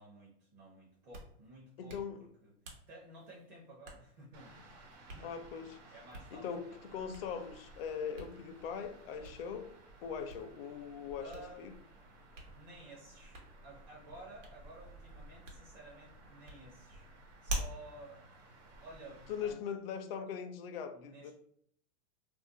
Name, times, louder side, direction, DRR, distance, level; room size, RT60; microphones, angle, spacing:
voice 1, 0.0-2.5 2.9-4.8 5.1-5.3 5.9-6.8 11.2-11.6 12.5-17.1 17.4-19.6 20.9-21.3, right 1 dB, 35° right, 0.7 m, -54 dB
Hands, 0.9-19.4, right 1 dB, 85° right, 1.1 m, -49 dB
voice 2, 1.8-2.2 5.2-5.8 6.3-9.7 10.0-11.3 11.6-11.7 19.3-21.3, left 7 dB, 50° left, 0.4 m, -41 dB
sound 1, 4.3-19.5, right 2 dB, 60° right, 1.1 m, -57 dB
2.5 x 2.1 x 3.7 m
supercardioid pair, 165°, 37 cm